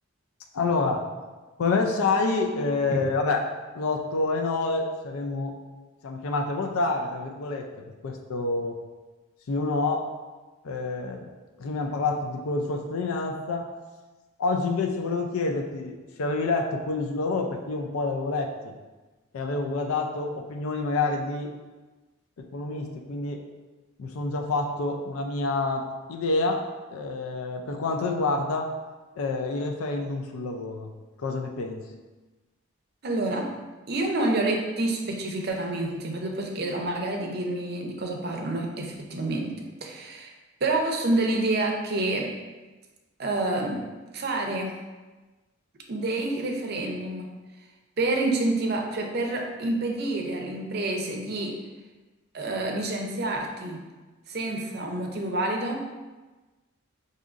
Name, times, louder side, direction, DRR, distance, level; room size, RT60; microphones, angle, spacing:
voice 1, 0.5-1.1 1.6-3.5 3.7-5.6 6.0-7.7 8.0-8.8 9.5-10.1 10.6-11.2 11.6-13.7 14.4-18.7 19.3-21.5 22.4-23.4 24.0-28.7 29.2-30.9 31.2-31.8, left 3 dB, 80° left, 2 dB, 0.4 m, -28 dB
voice 2, 33.0-33.5 33.9-39.5 39.8-40.3 40.6-42.3 43.2-43.8 44.1-44.7 45.9-47.3 48.0-51.5 52.3-53.8 54.3-55.8, right 2 dB, 45° right, 1 dB, 0.5 m, -28 dB
4.9 x 2.7 x 2.4 m, 1.2 s
head